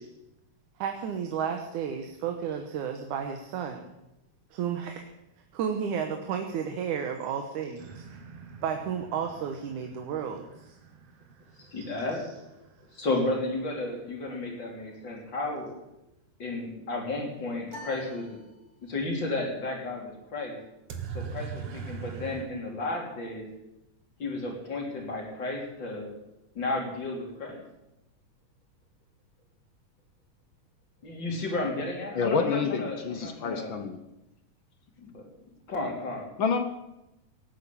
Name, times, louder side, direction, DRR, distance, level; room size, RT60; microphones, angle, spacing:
voice 1, 0.8-3.9 4.5-5.1 5.5-7.8 8.6-10.8 11.7-11.9, right 7 dB, 85° right, 4 dB, 2.6 m, -32 dB
sound 1, 7.8-13.5 20.9-22.5, right 6 dB, 55° right, 2.3 m, -43 dB
voice 2, 11.7-12.3 12.9-15.7 16.4-18.4 18.8-20.6 21.1-23.5 24.2-26.1 26.6-27.6 31.0-33.8 35.0-35.3 35.7-36.3, left 2 dB, 35° left, 0 dB, 3.9 m, -33 dB
sound 2, 17.7-19.2, left 1 dB, 15° right, 2.9 m, -47 dB
voice 3, 32.1-34.0 36.4-36.6, left 5 dB, 65° left, 8 dB, 1.2 m, -28 dB
18.5 x 8.9 x 8.5 m, 0.92 s
omnidirectional pair, 3.4 m